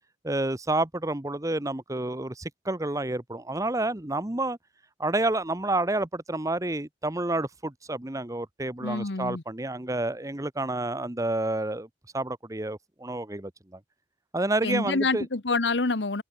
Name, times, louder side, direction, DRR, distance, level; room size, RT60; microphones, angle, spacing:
voice 1, 0.2-4.6 5.0-11.9 12.1-13.8 14.3-15.3, right 2 dB, 20° right, 1.1 m, -29 dB
voice 2, 8.8-9.4 14.6-16.2, left 3 dB, 85° left, 1.3 m, -27 dB
head